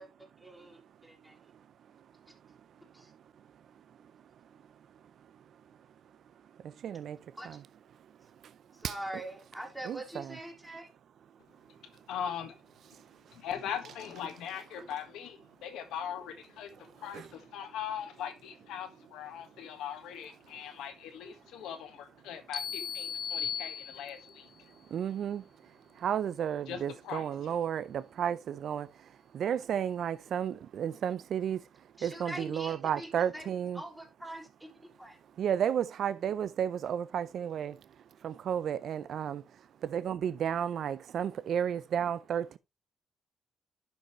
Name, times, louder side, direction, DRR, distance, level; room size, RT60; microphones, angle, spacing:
voice 1, 0.0-1.4 2.9-3.1 7.4-7.6 8.7-10.9 32.0-33.5 33.7-35.2, right 1 dB, 5° right, 2.8 m, -44 dB
voice 2, 6.8-7.2 7.5-7.6 8.8-8.9 9.8-10.4 17.1-17.2 24.9-25.4 26.0-28.9 29.3-31.6 32.0-33.8 35.4-37.7 38.2-39.4 39.8-42.6, right 9 dB, 65° right, 0.4 m, -32 dB
voice 3, 12.1-12.5 13.3-24.5 26.7-27.3, left 9 dB, 85° left, 1.5 m, -40 dB
sound 1, 22.5-24.4, left 8 dB, 60° left, 0.9 m, -37 dB
11.5 x 5.3 x 3.1 m
cardioid pair, 90°, 0 cm